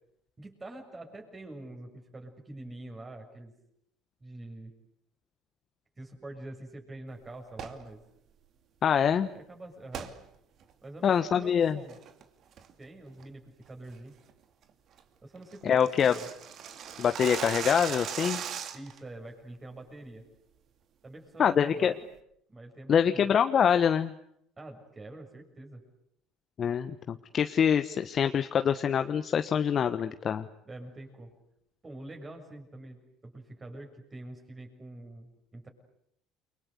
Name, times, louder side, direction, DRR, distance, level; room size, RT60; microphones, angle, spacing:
voice 1, 0.4-3.5 4.2-4.7 6.0-8.0 9.3-10.1 10.8-12.0 12.8-14.1 15.2-16.3 18.7-20.2 21.0-22.0 22.5-23.3 24.6-25.8 30.6-31.3 31.8-35.7, right 2 dB, 25° right, 4 dB, 7.1 m, -45 dB
sound 1, 7.5-7.8 9.9-10.1 10.6-10.7 11.3-11.5 11.9-12.2 12.6-12.9 13.2-13.3 13.7-13.9 14.3-14.4 14.7-14.8 15.0-15.1 15.4-19.0, right 8 dB, 55° right, 2.8 m, -38 dB
voice 2, 8.8-9.3 11.0-11.8 15.6-16.1 17.0-18.4 21.4-21.9 22.9-24.1 26.6-30.5, left 8 dB, 45° left, 9 dB, 1.3 m, -25 dB
29.0 x 24.5 x 8.2 m, 0.74 s
hypercardioid pair, 65°, 0 cm